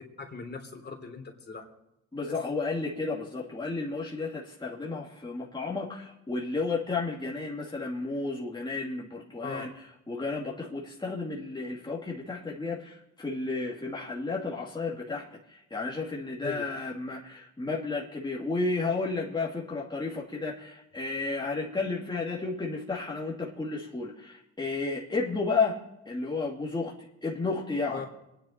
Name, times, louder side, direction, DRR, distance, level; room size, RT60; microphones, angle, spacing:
voice 1, 0.2-1.6 2.3-2.4 9.4-9.7 16.4-16.7 27.9-28.0, left 4 dB, 35° left, 3 dB, 3.4 m, -38 dB
voice 2, 2.1-9.7 10.1-25.8 26.1-28.0, left 3 dB, 15° left, -4 dB, 2.4 m, -32 dB
24.0 x 10.0 x 4.4 m, 0.89 s
cardioid pair, 90°, 30 cm